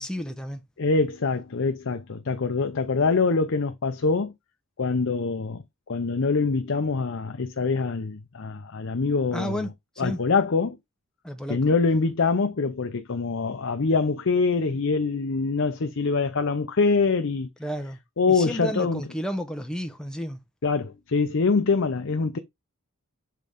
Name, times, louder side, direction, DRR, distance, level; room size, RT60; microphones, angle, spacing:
voice 1, 0.0-0.6 9.3-9.7 10.0-10.2 11.2-11.6 17.6-18.0 18.3-20.4, equal, 5° left, 0.7 m, -31 dB
voice 2, 0.8-4.3 4.8-9.6 10.0-10.8 11.5-17.5 18.2-19.0 20.6-22.4, left 4 dB, 60° left, 0.7 m, -24 dB
7.4 x 3.7 x 3.5 m
head